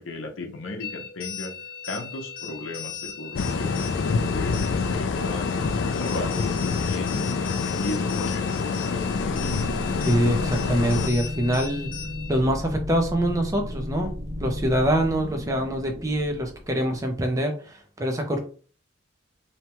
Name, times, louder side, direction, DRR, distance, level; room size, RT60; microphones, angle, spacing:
voice 1, 0.0-1.5 1.9-7.4 7.7-9.4, left 2 dB, 85° left, 3 dB, 0.7 m, -36 dB
sound 1, 0.8-12.4, left 8 dB, 45° left, 1.0 m, -38 dB
sound 2, 3.3-11.1, left 4 dB, 65° left, 0.3 m, -26 dB
sound 3, 8.9-17.1, left 1 dB, 60° right, 1.0 m, -34 dB
voice 2, 10.0-11.9 12.3-14.1 14.4-18.4, right 1 dB, 15° right, 3 dB, 0.5 m, -24 dB
2.8 x 2.2 x 3.0 m, 0.40 s
head